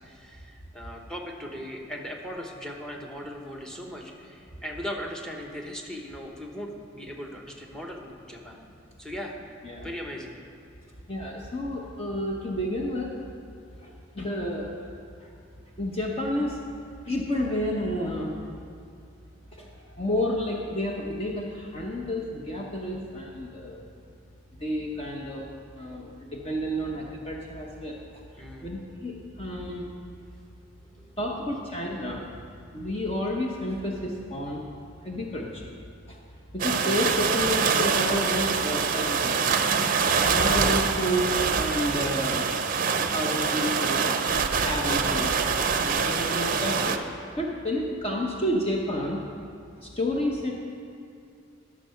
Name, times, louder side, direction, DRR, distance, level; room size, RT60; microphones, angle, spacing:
voice 1, 0.0-8.6 9.0-9.3 9.8-10.4 28.4-28.7 31.0-31.2, equal, 5° left, 1 dB, 1.0 m, -38 dB
voice 2, 11.1-13.1 13.8-14.7 15.2-15.3 15.8-16.6 17.0-18.4 19.5-23.8 24.6-25.5 25.7-29.9 31.2-32.3 32.7-34.6 35.0-35.7 36.1-36.2 36.5-39.5 40.3-42.5 43.0-44.0 44.6-45.4 45.8-47.0 47.4-49.2 49.8-50.5, left 1 dB, 30° left, -2 dB, 0.9 m, -30 dB
sound 1, 36.6-47.0, right 5 dB, 45° right, 0.6 m, -25 dB
12.0 x 6.7 x 5.7 m, 2.5 s
head